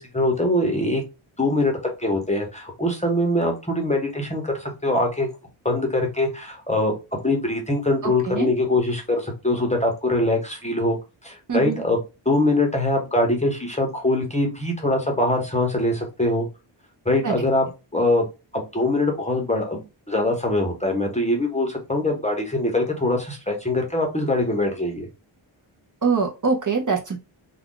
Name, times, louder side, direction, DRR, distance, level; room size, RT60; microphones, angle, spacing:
voice 1, 0.1-1.0 1.4-5.3 5.6-6.9 7.2-11.0 11.2-12.0 12.3-16.5 17.0-17.7 17.9-18.3 18.5-25.1, left 1 dB, 15° left, 2 dB, 0.7 m, -23 dB
voice 2, 8.0-8.5 11.5-11.8 17.2-17.4 26.0-27.2, right 5 dB, 40° right, 2 dB, 0.7 m, -24 dB
2.4 x 2.3 x 3.7 m, 0.28 s
wide cardioid pair, 105°, 49 cm